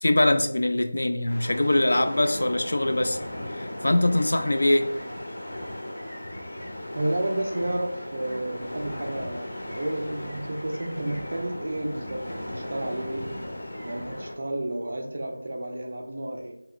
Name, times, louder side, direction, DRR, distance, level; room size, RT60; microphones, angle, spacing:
voice 1, 0.0-3.2 3.5-4.9, left 1 dB, 60° left, 0.3 m, -23 dB
sound 1, 1.3-14.3, left 1 dB, 45° left, 0.7 m, -37 dB
voice 2, 6.9-13.4 13.8-16.6, right 1 dB, 35° right, 0.4 m, -31 dB
2.9 x 2.9 x 2.4 m
figure-of-eight pair, 180°, 0 cm